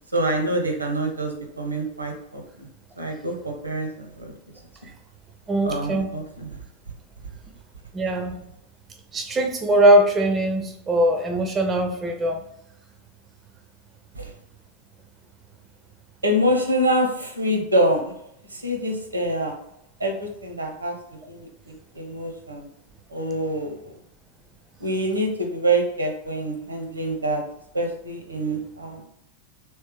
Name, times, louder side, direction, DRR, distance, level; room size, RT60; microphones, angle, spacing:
voice 1, 0.1-2.7 3.0-4.3 5.6-6.5 14.1-14.3 16.2-18.1 18.5-19.5 20.0-22.7 23.1-23.9 24.8-27.4 27.7-29.0, right 1 dB, 80° right, 3 dB, 0.7 m, -26 dB
voice 2, 5.5-6.1 7.9-8.4 9.1-12.4, right 1 dB, 20° right, 5 dB, 0.5 m, -21 dB
3.2 x 3.1 x 3.4 m, 0.76 s
figure-of-eight pair, 90°, 0 cm